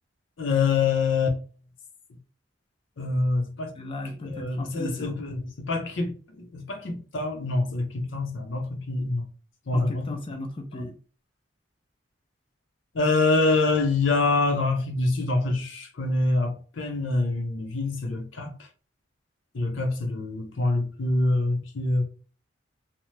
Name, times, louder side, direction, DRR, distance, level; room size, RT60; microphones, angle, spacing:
voice 1, 0.4-1.4 3.0-3.7 4.3-9.3 9.7-10.1 12.9-18.5 19.5-22.0, left 3 dB, 85° left, 0.7 m, -25 dB
voice 2, 3.8-5.2 9.7-11.0, left 2 dB, 30° left, 0.3 m, -36 dB
2.8 x 2.0 x 3.1 m
head